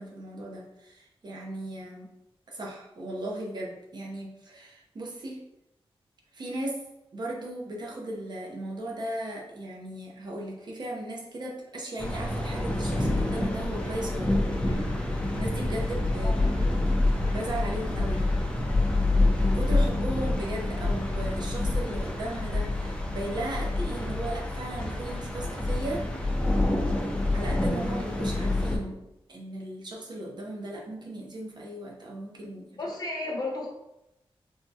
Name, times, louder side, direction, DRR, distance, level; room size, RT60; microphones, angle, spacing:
voice 1, 0.0-2.1 2.5-5.4 6.3-6.8 7.1-14.4 15.1-16.4 17.3-18.2 19.4-26.0 27.3-29.0 29.3-32.7, right 1 dB, 45° right, -2 dB, 0.7 m, -36 dB
sound 1, 12.0-28.8, left 2 dB, 10° left, 0.4 m, -27 dB
sound 2, 12.3-18.4, right 1 dB, 80° left, 0.8 m, -46 dB
voice 2, 32.8-33.7, left 2 dB, 40° left, -2 dB, 0.8 m, -32 dB
3.5 x 2.2 x 2.7 m, 0.89 s
wide cardioid pair, 135°, 10 cm